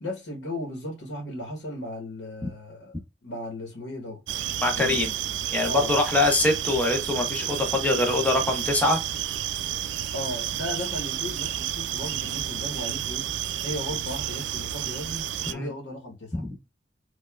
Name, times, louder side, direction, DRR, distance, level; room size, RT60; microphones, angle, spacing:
voice 1, 0.0-2.9 3.2-4.2 4.7-5.0 5.7-5.9 10.1-13.3 13.6-16.5, left 1 dB, 85° left, 1.0 m, -35 dB
sound 1, 4.3-15.5, right 11 dB, 90° right, 0.3 m, -31 dB
voice 2, 4.6-5.1 5.5-9.0 15.5-15.7 16.3-16.6, left 2 dB, 10° left, 0.7 m, -24 dB
4.6 x 2.3 x 2.2 m
head